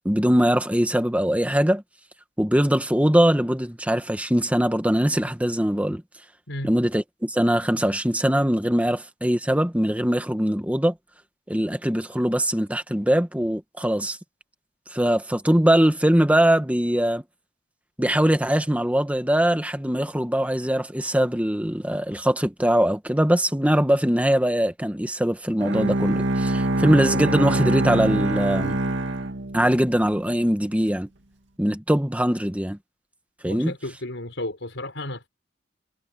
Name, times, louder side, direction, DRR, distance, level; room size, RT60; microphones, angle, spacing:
voice 1, 0.0-1.8 2.4-6.0 6.6-10.9 11.5-14.2 14.9-17.2 18.0-28.8 29.5-31.1 31.6-32.8 33.4-33.7, equal, 10° right, 1.7 m, -22 dB
Bowed string instrument, 25.6-30.0, right 2 dB, 75° right, 2.3 m, -24 dB
voice 2, 33.5-35.3, left 1 dB, 90° left, 5.2 m, -33 dB
head